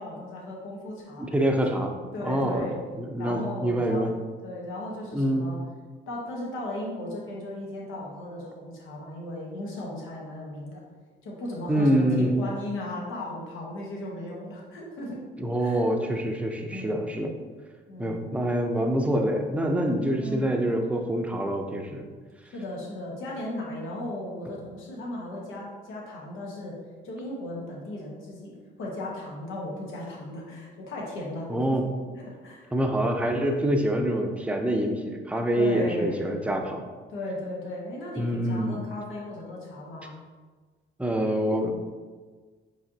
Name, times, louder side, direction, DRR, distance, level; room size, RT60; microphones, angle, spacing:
voice 1, 0.0-1.3 2.1-2.8 3.2-4.1 4.4-5.6 6.1-10.8 11.2-15.2 15.6-15.8 16.6-17.0 17.9-18.2 20.2-20.5 22.5-26.8 27.0-31.8 32.2-32.7 35.5-36.2 37.1-40.1, left 1 dB, 90° left, -3 dB, 1.1 m, -36 dB
voice 2, 1.2-2.0 2.2-2.7 3.0-4.1 5.1-5.5 11.7-12.4 15.4-17.3 18.0-22.0 31.5-31.8 32.7-36.9 38.2-38.8 41.0-41.7, right 1 dB, 5° right, 3 dB, 0.5 m, -26 dB
5.1 x 3.3 x 2.7 m, 1.4 s
cardioid pair, 90°, 20 cm